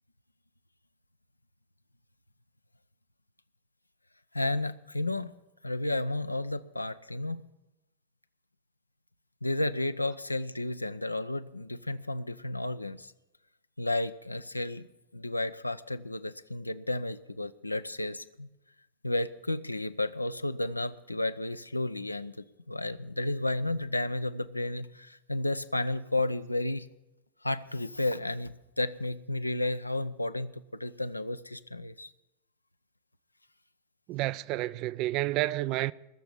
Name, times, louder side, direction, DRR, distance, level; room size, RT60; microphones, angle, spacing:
voice 1, 4.3-5.3 5.6-7.4 9.4-13.1 13.8-14.9 15.1-18.5 19.0-22.4 22.7-26.9 27.4-32.1, left 2 dB, 85° left, 0.5 m, -32 dB
voice 2, 34.1-35.9, right 17 dB, 40° right, 0.4 m, -30 dB
20.5 x 6.9 x 7.4 m
figure-of-eight pair, 90°, 0 cm